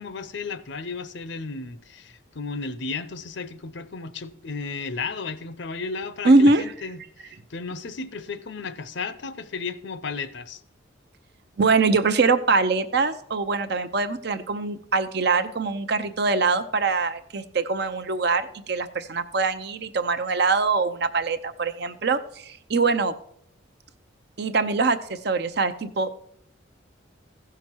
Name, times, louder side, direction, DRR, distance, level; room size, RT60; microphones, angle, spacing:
voice 1, 0.0-10.6, left 4 dB, 65° left, 0.6 m, -34 dB
voice 2, 6.2-6.6 11.6-23.1 24.4-26.2, right 3 dB, 55° right, 0.6 m, -23 dB
15.0 x 5.9 x 4.5 m
head